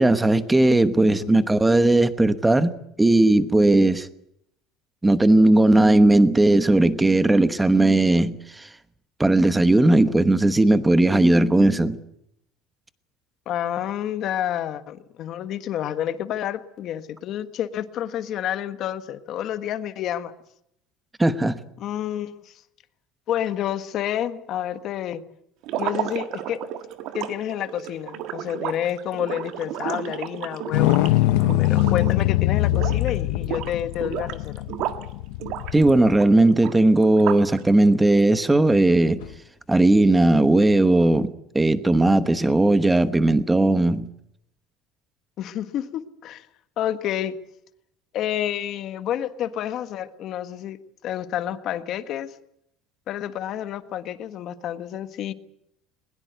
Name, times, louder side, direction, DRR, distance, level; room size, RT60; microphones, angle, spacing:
voice 1, 0.0-2.7 3.0-4.1 5.0-8.7 9.2-12.0 21.2-21.6 35.7-39.2 39.7-44.1, right 2 dB, 5° right, 1.1 m, -17 dB
voice 2, 0.8-1.5 13.5-20.3 21.8-22.6 23.3-25.2 25.8-26.6 27.1-31.1 31.4-34.6 45.4-46.5 46.8-47.4 48.1-50.8 51.0-52.3 53.1-55.3, left 11 dB, 40° left, 1.5 m, -29 dB
sound 1, 25.6-32.3 32.6-33.1 33.4-35.1 35.4-37.6, right 12 dB, 55° right, 1.7 m, -32 dB
sound 2, 30.7-36.1 39.2-39.3, left 16 dB, 85° left, 0.9 m, -22 dB
21.5 x 21.0 x 8.2 m
cardioid pair, 175°, 0 cm